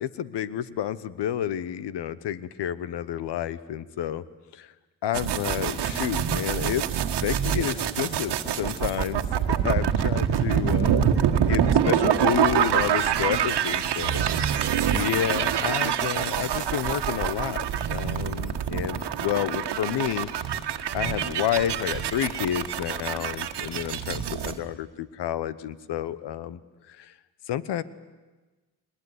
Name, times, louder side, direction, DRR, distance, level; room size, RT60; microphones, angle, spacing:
voice 1, 0.0-4.2 4.5-4.7 5.0-11.0 11.4-14.6 14.9-20.3 20.9-26.6 26.9-27.1 27.5-27.8, left 10 dB, 80° left, 17 dB, 1.1 m, -30 dB
sound 1, 5.1-24.6, right 9 dB, 80° right, 1.6 m, -26 dB
21.5 x 20.5 x 9.7 m, 1.2 s
cardioid pair, 65°, 41 cm